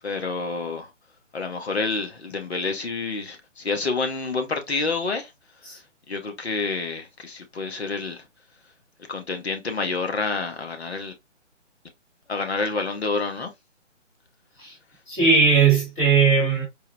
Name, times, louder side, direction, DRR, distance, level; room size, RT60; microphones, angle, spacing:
voice 1, 0.0-0.9 1.3-5.3 6.1-8.2 9.1-11.1 12.3-13.5, left 3 dB, 55° left, 0.9 m, -28 dB
voice 2, 15.1-16.6, right 5 dB, 5° left, 0.7 m, -18 dB
4.6 x 2.0 x 3.2 m
figure-of-eight pair, 150°, 38 cm